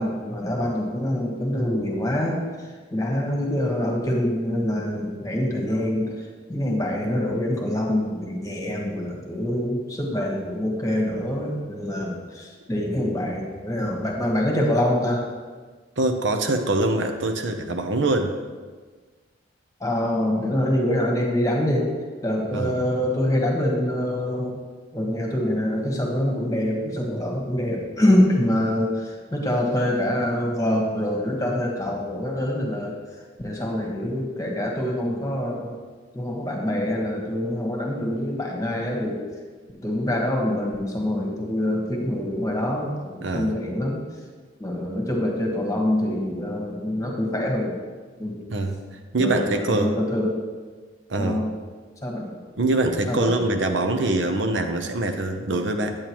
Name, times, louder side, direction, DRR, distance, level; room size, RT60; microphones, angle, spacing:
voice 1, 0.0-15.3 19.8-21.9 22.2-24.5 24.9-35.8 36.1-39.2 39.7-44.0 44.6-47.8 48.2-48.4 49.2-50.4 51.2-51.5 52.0-52.3 53.1-53.4, left 1 dB, 15° left, -1 dB, 1.3 m, -25 dB
voice 2, 16.0-18.3 22.5-22.7 43.2-43.5 48.5-48.7 49.1-50.0 51.1-51.4 52.6-56.0, right 2 dB, 70° right, 5 dB, 0.7 m, -24 dB
8.7 x 8.7 x 3.0 m, 1.4 s
head